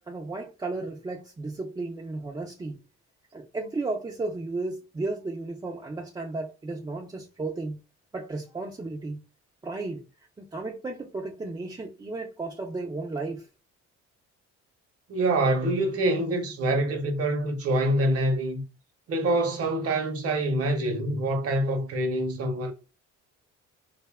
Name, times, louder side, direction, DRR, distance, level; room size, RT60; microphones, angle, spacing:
voice 1, 0.1-2.8 3.3-7.8 8.1-9.2 9.6-10.0 10.4-13.4, right 3 dB, 15° right, 0.3 m, -34 dB
voice 2, 15.1-18.6 19.1-22.7, right 1 dB, 50° right, 0.7 m, -25 dB
2.6 x 2.1 x 2.2 m
cardioid pair, 90°, 30 cm